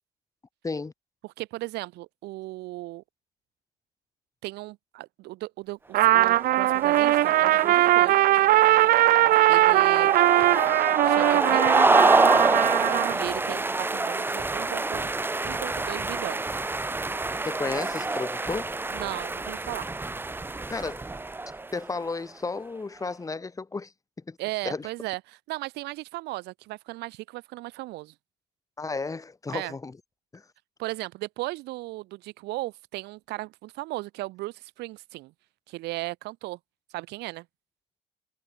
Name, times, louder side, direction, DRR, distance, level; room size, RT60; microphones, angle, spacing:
voice 1, 1.2-3.0 4.4-8.2 9.5-10.1 11.0-12.3 13.1-15.1 15.4-16.4 18.9-19.9 24.4-28.1 29.5-29.7 30.8-35.3 35.7-36.6 36.9-37.4, right 19 dB, 85° right, 1.1 m, -36 dB
Trumpet, 5.9-13.2, right 15 dB, 60° right, 0.4 m, -20 dB
sound 1, 6.3-21.9, right 2 dB, 10° right, 1.0 m, -27 dB
voice 2, 17.4-18.7 20.7-21.1 21.7-23.9 24.3-24.4 24.6-24.9 28.8-30.0 30.3-30.4, left 3 dB, 20° left, 1.5 m, -33 dB
cardioid pair, 110°, 17 cm